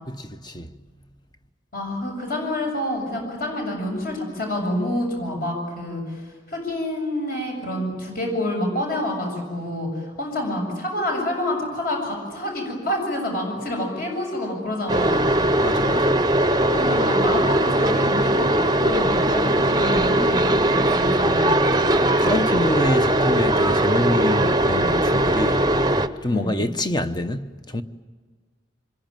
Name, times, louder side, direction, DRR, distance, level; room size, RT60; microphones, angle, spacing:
voice 1, 0.1-0.7 15.6-16.3 22.2-25.6 26.2-27.8, left 1 dB, 20° left, 0.9 m, -26 dB
voice 2, 1.7-6.2 6.5-15.3 16.6-21.6 26.3-26.6, left 1 dB, 50° left, 7.3 m, -28 dB
sound 1, 14.9-26.1, right 1 dB, 20° right, 0.8 m, -20 dB
26.0 x 22.5 x 9.1 m
head